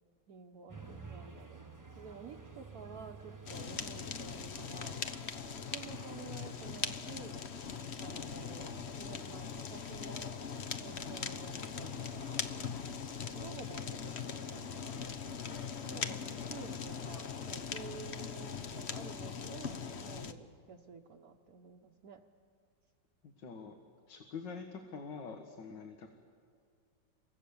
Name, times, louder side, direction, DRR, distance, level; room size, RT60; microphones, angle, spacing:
voice 1, 0.3-1.7 2.0-5.1 5.7-7.4 8.0-10.4 10.8-15.0 15.8-16.2 16.5-22.2, right 5 dB, 60° right, 2 dB, 1.4 m, -51 dB
sound 1, 0.7-17.2, right 3 dB, 10° right, 1.2 m, -55 dB
Fire, 3.5-20.3, left 6 dB, 45° left, 1.1 m, -41 dB
voice 2, 15.8-16.6 23.2-23.8 24.1-26.1, left 5 dB, 75° left, 4 dB, 2.1 m, -46 dB
29.0 x 24.0 x 7.1 m, 2.1 s
omnidirectional pair, 2.0 m